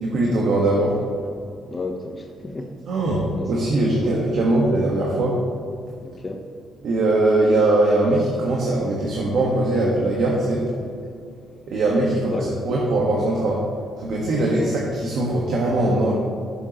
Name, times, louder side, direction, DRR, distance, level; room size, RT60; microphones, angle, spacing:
voice 1, 0.0-1.0 2.9-5.4 6.8-10.6 11.7-12.4 12.6-13.6 14.0-16.2, right 2 dB, 70° right, -3 dB, 1.6 m, -21 dB
voice 2, 1.6-2.7 3.3-3.5 4.0-4.1 6.0-6.4 12.3-12.6 14.3-14.7, left 2 dB, 30° left, 3 dB, 1.0 m, -32 dB
13.5 x 7.1 x 3.1 m, 2.4 s
cardioid pair, 90°, 0 cm